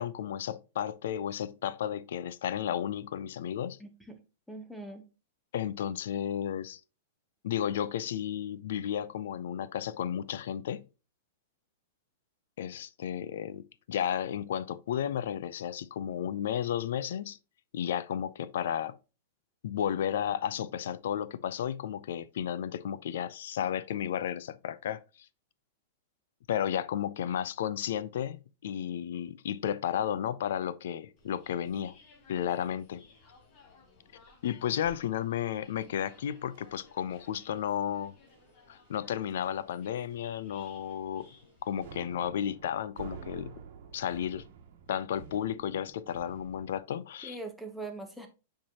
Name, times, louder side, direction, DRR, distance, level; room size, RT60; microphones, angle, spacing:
voice 1, 0.0-3.8 5.5-6.8 7.4-10.8 12.6-17.4 17.7-19.0 19.6-25.0 26.5-32.0 32.3-33.0 34.4-38.1 38.7-41.3 41.6-43.5 43.9-44.5 44.9-47.4, left 9 dB, 70° left, 0.5 m, -33 dB
voice 2, 3.8-5.0 47.2-48.3, right 2 dB, ahead, 0.9 m, -42 dB
sound 1, 31.2-42.0, left 3 dB, 35° left, 1.7 m, -59 dB
sound 2, 35.9-36.8 37.1-37.4 37.7-38.0 38.3-38.5 38.9-39.0 39.4-39.8 40.0-40.2 40.6-41.5 41.8-46.8, right 7 dB, 55° right, 1.3 m, -50 dB
7.4 x 4.6 x 2.9 m
supercardioid pair, 160°, 0 cm